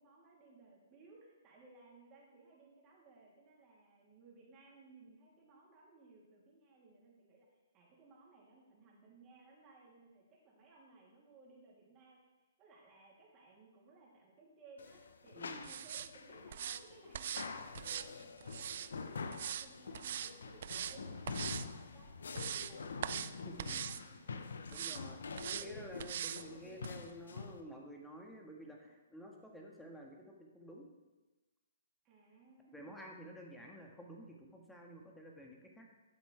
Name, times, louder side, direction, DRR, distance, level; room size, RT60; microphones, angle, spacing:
voice 1, 0.0-12.2 12.6-22.1 22.4-25.9 26.5-26.8 32.0-33.2, right 3 dB, 25° right, -4 dB, 3.0 m, -61 dB
sound 1, 14.8-27.6, left 4 dB, 75° left, 0.7 m, -46 dB
voice 2, 15.3-15.7 23.4-23.8 24.7-25.2 25.4-30.9 32.7-35.9, equal, 5° left, -1 dB, 1.5 m, -51 dB
sound 2, 15.6-16.1 16.5-16.8 17.1-17.5 17.7-18.9 19.3-19.7 19.9-20.3 20.6-21.0 21.3-21.7 22.1-22.7 23.0-23.3 23.6-24.0 24.7-25.0 25.4-25.7 26.0-26.4 26.8-26.9, right 9 dB, 55° right, 0.4 m, -41 dB
12.0 x 7.1 x 3.4 m, 1.2 s
hypercardioid pair, 135°, 0 cm